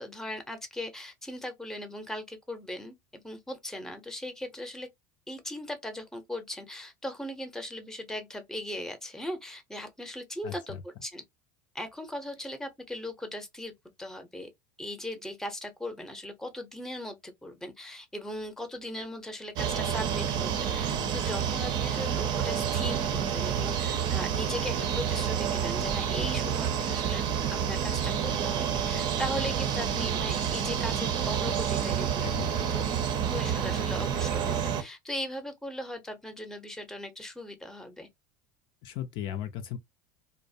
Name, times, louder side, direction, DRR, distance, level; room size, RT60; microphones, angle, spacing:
voice 1, 0.0-4.9 5.3-11.2 11.7-13.7 14.0-14.5 14.8-32.8 33.3-38.1, left 1 dB, 5° left, 0.6 m, -38 dB
voice 2, 10.4-10.8 32.2-32.6 38.8-39.8, left 9 dB, 55° left, 0.4 m, -36 dB
sound 1, 19.6-34.8, right 8 dB, 50° right, 0.6 m, -29 dB
2.6 x 2.0 x 2.5 m
supercardioid pair, 100°, 10 cm